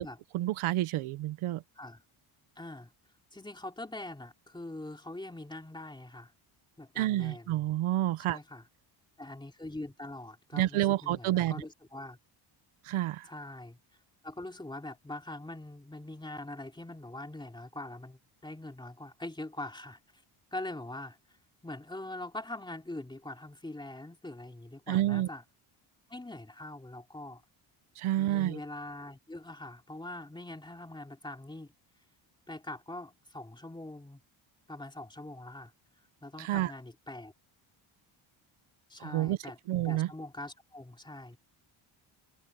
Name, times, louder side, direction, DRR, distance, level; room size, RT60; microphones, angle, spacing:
voice 1, 0.3-1.6 7.0-8.4 10.5-11.6 12.8-13.3 24.9-25.3 28.0-28.6 36.4-36.7 39.1-39.4 39.7-40.1, right 14 dB, 80° right, 0.9 m, -29 dB
voice 2, 2.6-2.9 3.3-6.3 6.8-7.6 8.2-8.6 9.2-12.2 13.3-13.8 14.2-20.0 20.5-21.2 21.6-25.4 26.1-27.4 28.2-31.7 32.5-34.2 34.7-35.7 36.2-37.3 38.9-39.6 39.8-41.4, left 2 dB, 10° left, 2.9 m, -43 dB
cardioid pair, 120°, 49 cm